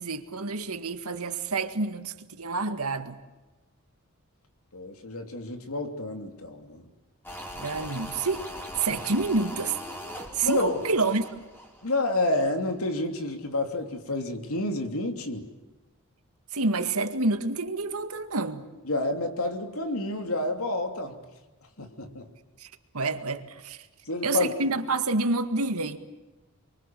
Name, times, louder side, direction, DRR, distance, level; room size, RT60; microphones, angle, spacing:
voice 1, 0.0-3.2 7.5-8.5 8.8-9.8 10.3-11.2 16.5-18.7 22.0-22.2 22.6-23.9 24.2-26.0, right 3 dB, 80° right, 8 dB, 2.0 m, -28 dB
voice 2, 4.7-6.9 8.9-9.0 10.4-10.8 11.8-15.5 18.9-21.2 21.8-22.3 24.1-24.5, left 2 dB, 75° left, 6 dB, 3.1 m, -29 dB
sound 1, 7.2-12.4 12.7-12.8, equal, 10° left, 4.0 m, -40 dB
28.5 x 24.0 x 7.7 m, 1.1 s
head